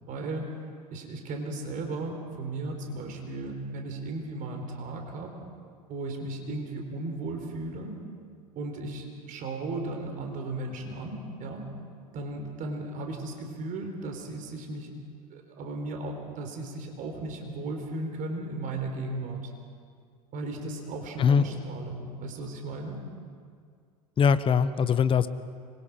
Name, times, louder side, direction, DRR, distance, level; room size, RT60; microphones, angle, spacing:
voice 1, 0.1-0.5 0.9-5.3 5.9-8.0 8.6-11.7 12.1-14.9 15.3-19.5 20.3-23.0, right 2 dB, 40° right, 3 dB, 4.3 m, -36 dB
voice 2, 24.2-25.3, left 6 dB, 25° left, 13 dB, 1.0 m, -22 dB
26.0 x 23.0 x 5.1 m, 2.1 s
hypercardioid pair, 80°, 20 cm